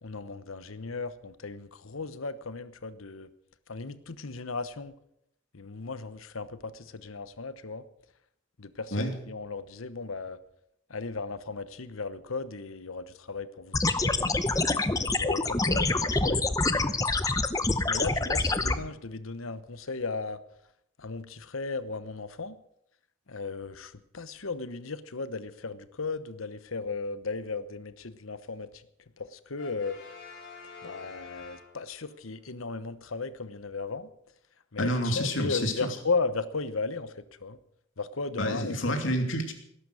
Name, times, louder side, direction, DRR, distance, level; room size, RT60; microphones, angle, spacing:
voice 1, 0.0-3.3 3.7-4.9 5.5-7.8 8.6-10.4 10.9-13.8 14.0-14.4 15.0-16.9 17.9-20.4 21.0-22.6 23.3-28.8 29.2-30.0 30.8-34.1 34.7-37.6 38.0-38.9, left 4 dB, 85° left, 13 dB, 1.1 m, -36 dB
sound 1, 13.7-18.7, left 2 dB, 15° left, 0.7 m, -26 dB
Brass instrument, 29.6-32.2, left 5 dB, 55° left, 5.9 m, -47 dB
voice 2, 34.8-35.7 38.4-39.5, equal, 70° left, 4 dB, 2.9 m, -28 dB
18.5 x 11.5 x 6.4 m, 0.75 s
head